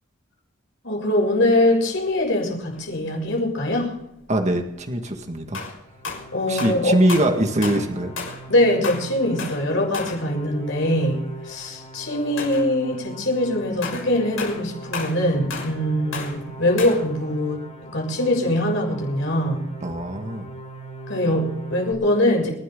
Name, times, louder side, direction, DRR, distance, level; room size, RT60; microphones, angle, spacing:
voice 1, 0.8-4.0 6.3-7.0 8.5-11.2 11.4-19.7 21.1-22.5, left 1 dB, 65° left, 0 dB, 7.1 m, -22 dB
sound 1, 1.7-1.8 2.5-2.8 4.5-4.6 5.5-8.5 8.8-10.3 11.0-11.2 11.5-11.6 12.4-13.0 13.8-17.1, left 4 dB, 80° left, 6.4 m, -33 dB
voice 2, 4.3-5.6 6.5-8.1 19.8-20.4, right 1 dB, 35° right, 3 dB, 1.8 m, -22 dB
sound 2, 5.7-21.9, right 1 dB, 35° left, 4.7 m, -40 dB
28.5 x 12.5 x 3.9 m, 0.82 s
head